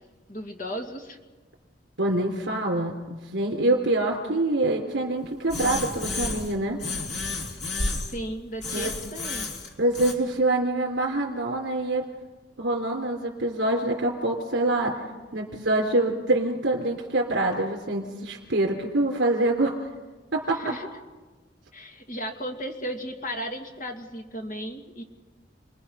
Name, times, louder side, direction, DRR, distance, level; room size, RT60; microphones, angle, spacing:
voice 1, 0.3-1.2 8.1-9.5 20.5-20.9 21.7-25.0, equal, 40° left, 3 dB, 2.2 m, -35 dB
voice 2, 2.0-6.8 8.7-8.9 9.8-12.0 12.6-15.0 15.3-19.7 20.3-20.6, right 2 dB, 75° right, -2 dB, 3.3 m, -25 dB
sound 1, 5.5-6.5 6.8-8.2 8.6-10.1, left 3 dB, 65° left, 2.9 m, -31 dB
29.5 x 21.0 x 5.6 m, 1.3 s
head